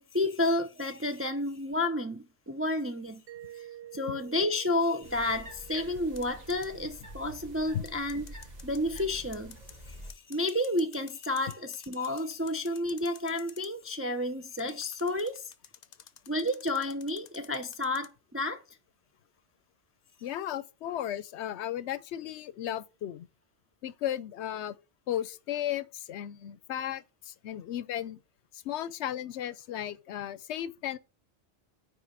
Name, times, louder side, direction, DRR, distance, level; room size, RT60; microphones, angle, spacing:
voice 1, 0.0-3.2 3.5-3.7 3.9-8.4 8.6-9.6 9.8-15.5 16.3-18.6, left 1 dB, 20° right, 0.3 m, -31 dB
Mallet percussion, 3.3-7.9, right 12 dB, 80° right, 0.9 m, -50 dB
sound 1, 5.0-10.1, equal, 40° right, 1.4 m, -47 dB
sound 2, 6.2-6.7 7.8-9.7 10.1-13.7 14.6-18.1, left 8 dB, 50° left, 0.6 m, -50 dB
voice 2, 20.2-23.3 23.8-24.8 25.1-28.2 28.5-31.0, left 11 dB, 75° left, 0.9 m, -35 dB
9.4 x 3.3 x 4.7 m
omnidirectional pair, 1.2 m